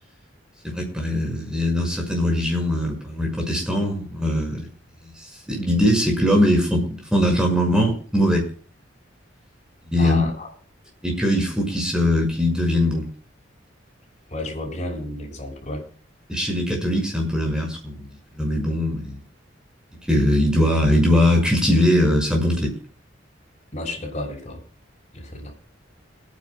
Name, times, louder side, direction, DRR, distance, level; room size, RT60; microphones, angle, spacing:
voice 1, 0.6-4.7 5.0-8.5 9.9-10.3 11.0-13.1 16.3-18.1 18.3-19.2 20.1-22.7, left 1 dB, 5° right, 1 dB, 5.7 m, -21 dB
voice 2, 10.0-10.5 14.3-15.8 23.7-24.6 25.1-25.5, left 1 dB, 35° left, 0 dB, 5.6 m, -31 dB
29.0 x 9.7 x 2.3 m, 0.42 s
head